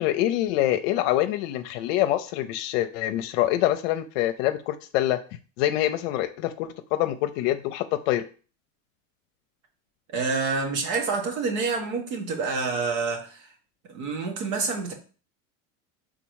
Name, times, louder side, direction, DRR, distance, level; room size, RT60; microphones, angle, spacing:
voice 1, 0.0-5.2 5.6-8.2, left 13 dB, 65° left, 0.6 m, -25 dB
voice 2, 10.1-13.5 13.9-14.9, right 4 dB, 80° right, 1.9 m, -28 dB
5.2 x 3.8 x 4.7 m
supercardioid pair, 140°, 41 cm